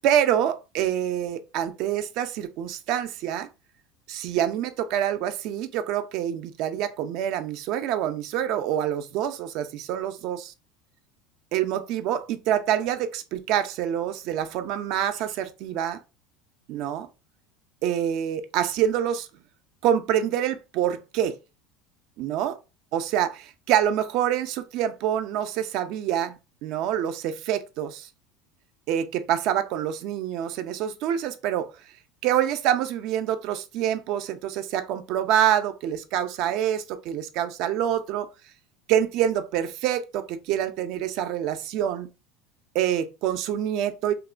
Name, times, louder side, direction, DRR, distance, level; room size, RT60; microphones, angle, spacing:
voice 1, 0.0-3.5 4.1-10.5 11.5-16.0 16.7-17.1 17.8-19.3 19.8-21.4 22.2-22.5 22.9-28.1 28.9-31.7 32.2-38.3 38.9-42.1 42.7-44.1, right 10 dB, 60° right, 0.4 m, -26 dB
2.9 x 2.1 x 2.4 m
supercardioid pair, 100°, 0 cm